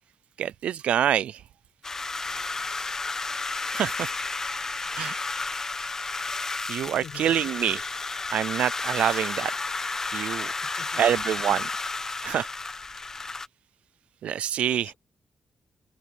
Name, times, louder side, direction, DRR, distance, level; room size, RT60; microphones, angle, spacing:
voice 1, 0.4-1.4 3.7-4.1 4.9-5.1 6.7-7.8 8.3-9.5 10.1-10.5 11.0-11.7 12.2-12.5 14.2-14.9, right 10 dB, 90° right, 0.3 m, -26 dB
sound 1, 1.8-13.5, left 3 dB, 25° left, 1.4 m, -32 dB
voice 2, 2.2-3.0 6.8-7.3 10.6-11.0 14.6-15.0, left 8 dB, 75° left, 4.4 m, -48 dB
open air
wide cardioid pair, 140°, 2 cm